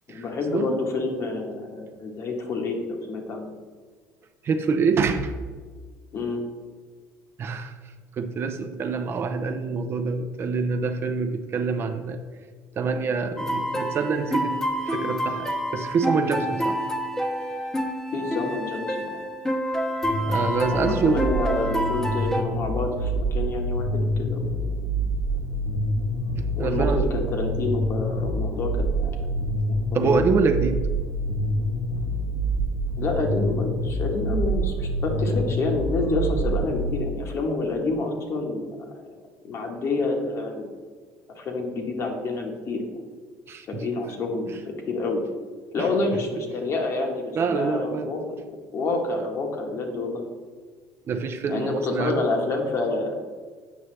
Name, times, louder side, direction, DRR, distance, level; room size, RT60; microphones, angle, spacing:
voice 1, 0.1-3.5 6.1-6.4 18.1-19.2 20.7-24.5 26.6-29.2 29.7-30.2 33.0-38.8 39.4-40.7 41.4-42.8 43.7-45.2 45.7-48.2 48.7-50.2 51.5-53.2, left 3 dB, 50° left, 2 dB, 1.3 m, -28 dB
voice 2, 4.4-5.3 7.4-12.2 12.7-16.8 20.3-21.3 26.4-27.3 29.9-30.9 43.5-43.9 44.4-44.6 45.8-45.9 47.3-48.1 51.1-52.3, right 4 dB, 40° right, 8 dB, 0.5 m, -26 dB
sound 1, 13.4-22.4, equal, 10° left, 0.8 m, -28 dB
sound 2, 20.0-36.9, right 1 dB, 80° left, 1.4 m, -27 dB
8.0 x 5.5 x 3.2 m, 1.5 s
cardioid pair, 105°, 6 cm